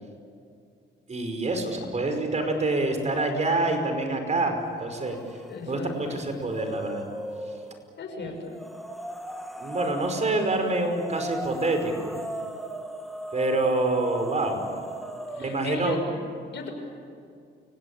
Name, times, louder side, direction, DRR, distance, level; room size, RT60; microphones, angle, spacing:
voice 1, 1.1-5.2 5.7-7.0 8.2-8.3 9.6-12.1 13.3-14.6 15.3-16.0, right 2 dB, 35° right, 6 dB, 5.4 m, -26 dB
sound 1, 5.0-5.6 5.9-7.7 8.5-15.7, right 1 dB, ahead, 2.4 m, -37 dB
voice 2, 5.5-6.2 8.0-8.5 15.3-16.2 16.5-16.7, left 3 dB, 65° left, 3 dB, 6.4 m, -36 dB
29.5 x 17.5 x 8.8 m, 2.3 s
cardioid pair, 90°, 20 cm